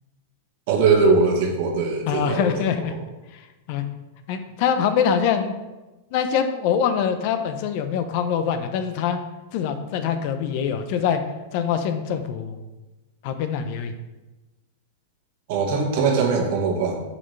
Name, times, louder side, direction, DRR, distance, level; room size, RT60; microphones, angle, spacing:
voice 1, 0.7-2.5 2.9-3.0 15.5-17.0, right 4 dB, 60° right, 2 dB, 1.6 m, -21 dB
voice 2, 2.1-2.9 3.7-3.8 4.3-5.5 6.1-9.2 9.5-11.2 11.5-12.6 13.2-13.9, left 7 dB, 55° left, 8 dB, 0.8 m, -24 dB
7.4 x 6.7 x 3.3 m, 1.1 s
hypercardioid pair, 130°, 0 cm